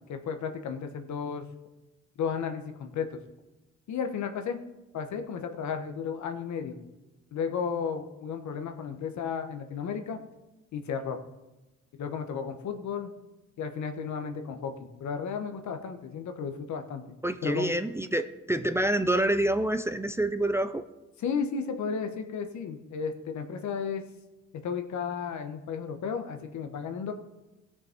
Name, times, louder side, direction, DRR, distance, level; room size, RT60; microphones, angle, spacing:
voice 1, 0.1-1.4 2.2-3.2 3.9-4.6 4.9-6.8 7.3-10.2 10.7-11.2 12.0-13.1 13.6-17.0 17.4-17.7 21.2-24.0 24.6-27.1, left 6 dB, 70° left, 6 dB, 1.3 m, -33 dB
voice 2, 17.2-20.8, right 1 dB, 10° right, 9 dB, 0.5 m, -27 dB
16.5 x 6.3 x 4.5 m, 1.0 s
cardioid pair, 90°, 30 cm